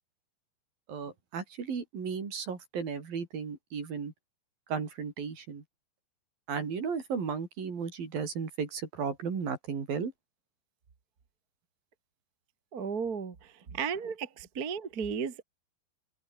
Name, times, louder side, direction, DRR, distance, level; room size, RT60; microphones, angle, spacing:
voice 1, 0.9-4.1 4.7-5.6 6.5-10.1 13.7-13.8, right 6 dB, 55° right, 5.9 m, -35 dB
voice 2, 12.7-15.4, right 6 dB, 40° right, 1.4 m, -34 dB
omnidirectional pair, 5.0 m